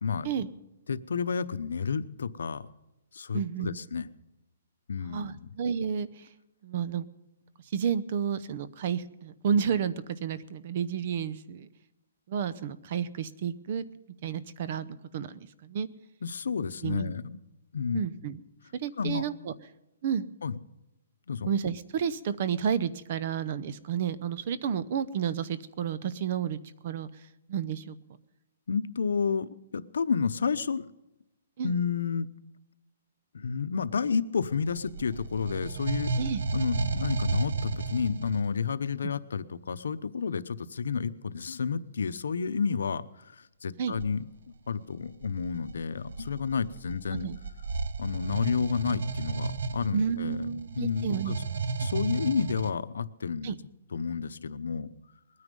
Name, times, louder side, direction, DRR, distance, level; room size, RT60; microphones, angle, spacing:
voice 1, 0.0-0.3 0.9-2.7 3.1-4.1 4.9-5.5 16.2-17.4 17.7-18.0 19.0-19.2 20.4-20.6 21.3-21.5 28.7-30.9 31.6-32.3 33.3-36.1 36.5-44.3 44.7-47.3 48.0-51.4 51.8-53.5 53.9-54.9, left 6 dB, 90° left, 14 dB, 0.8 m, -31 dB
voice 2, 3.3-3.8 5.0-6.1 6.6-7.0 7.7-11.7 12.3-13.8 14.2-14.9 15.1-15.9 16.8-17.1 17.9-18.4 18.8-19.5 20.0-20.2 21.5-26.6 26.8-27.1 27.5-27.9 31.6-31.7 36.2-36.4 39.0-39.1 43.8-43.9 47.2-47.4 49.9-51.4 53.4-53.6, right 7 dB, 40° right, 17 dB, 0.7 m, -31 dB
sound 1, 34.4-38.6 43.9-44.1 44.9-52.7, right 4 dB, 75° right, 0.9 m, -33 dB
21.0 x 9.7 x 5.3 m, 0.96 s
hypercardioid pair, 170°, 0 cm